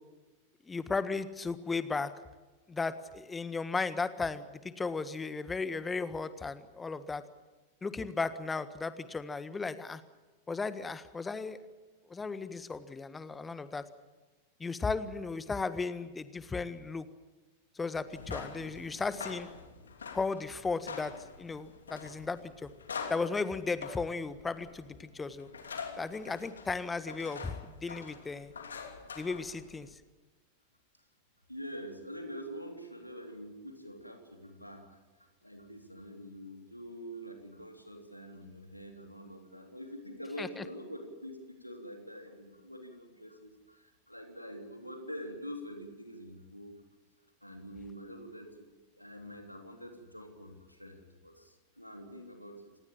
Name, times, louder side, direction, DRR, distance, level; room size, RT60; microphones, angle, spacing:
voice 1, 0.7-2.1 2.7-7.2 7.8-10.0 10.5-11.6 12.1-13.8 14.6-17.1 17.7-19.5 20.1-22.7 23.1-25.5 26.0-28.5 29.2-29.9 40.4-40.6, left 4 dB, 15° left, 13 dB, 1.5 m, -35 dB
sound 1, 18.0-29.9, left 5 dB, 70° left, 3.0 m, -45 dB
voice 2, 31.5-46.8 47.4-48.6 49.0-52.6, equal, 90° left, 4 dB, 3.4 m, -45 dB
26.5 x 19.0 x 7.4 m, 1.2 s
figure-of-eight pair, 90°, 0 cm